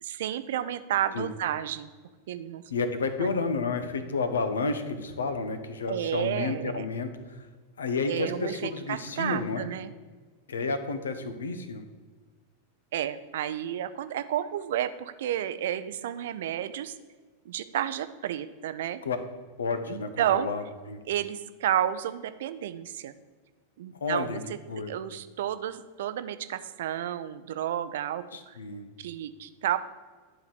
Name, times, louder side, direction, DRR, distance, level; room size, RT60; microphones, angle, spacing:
voice 1, 0.0-1.9 2.3-2.6 3.2-3.3 5.9-6.9 8.0-9.9 12.9-17.0 17.5-19.0 19.9-20.5 21.1-23.1 23.8-28.6 29.0-29.8, right 11 dB, 55° right, 12 dB, 0.5 m, -31 dB
voice 2, 2.7-7.4 7.8-9.7 10.5-11.8 19.0-19.2 19.6-21.0 24.0-24.4 24.7-25.0 28.3-28.9, left 4 dB, 70° left, 9 dB, 0.9 m, -31 dB
11.0 x 3.9 x 6.8 m, 1.4 s
figure-of-eight pair, 90°, 0 cm